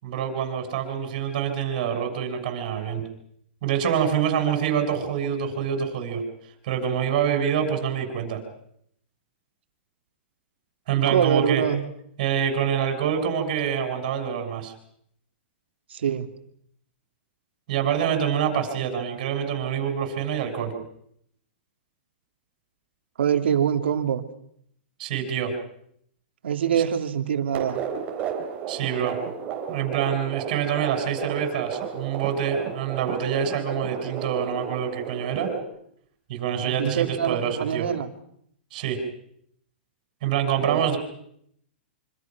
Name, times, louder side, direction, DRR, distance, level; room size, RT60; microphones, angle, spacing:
voice 1, 0.0-3.0 3.6-6.2 6.6-8.4 10.9-11.6 12.2-14.7 17.7-20.7 25.0-25.5 28.7-29.2 29.7-35.5 36.3-37.9 38.7-39.0 40.2-41.0, right 8 dB, 45° right, 5 dB, 6.5 m, -26 dB
voice 2, 11.1-11.8 15.9-16.3 23.2-24.2 26.4-27.8 36.6-38.1 40.6-40.9, right 8 dB, 90° right, 7 dB, 2.6 m, -24 dB
sound 1, 27.5-35.6, right 7 dB, 25° right, 4.0 m, -33 dB
26.0 x 25.5 x 6.1 m, 0.70 s
hypercardioid pair, 165°, 6 cm